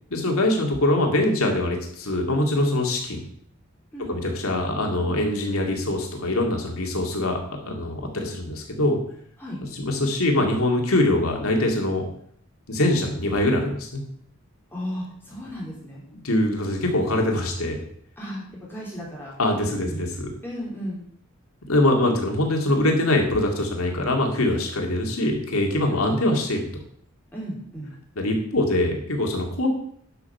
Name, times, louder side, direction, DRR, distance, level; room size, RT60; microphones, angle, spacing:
voice 1, 0.1-3.3 4.1-7.4 7.7-9.0 9.7-12.1 12.7-14.0 16.1-17.8 19.4-19.9 20.2-20.3 21.7-26.7 28.2-29.7, left 1 dB, 85° left, 2 dB, 2.4 m, -23 dB
voice 2, 14.7-16.0 18.2-19.3 19.8-20.0 20.4-21.0 27.3-27.9, equal, 10° left, -6 dB, 3.3 m, -34 dB
10.5 x 6.1 x 5.8 m, 0.64 s
head